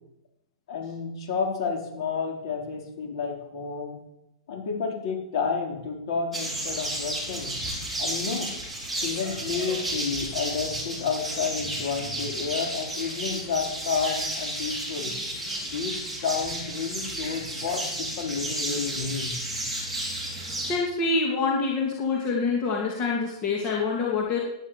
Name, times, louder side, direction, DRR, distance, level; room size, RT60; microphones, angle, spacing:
voice 1, 0.7-4.0 4.5-7.5 8.0-8.5 9.0-15.1 15.6-19.3, left 5 dB, 50° left, 3 dB, 4.2 m, -30 dB
sound 1, 6.3-20.8, right 1 dB, ahead, 4.1 m, -32 dB
voice 2, 20.6-24.4, left 4 dB, 25° left, -2 dB, 2.5 m, -26 dB
18.0 x 10.5 x 7.5 m, 0.88 s
supercardioid pair, 175°, 3 cm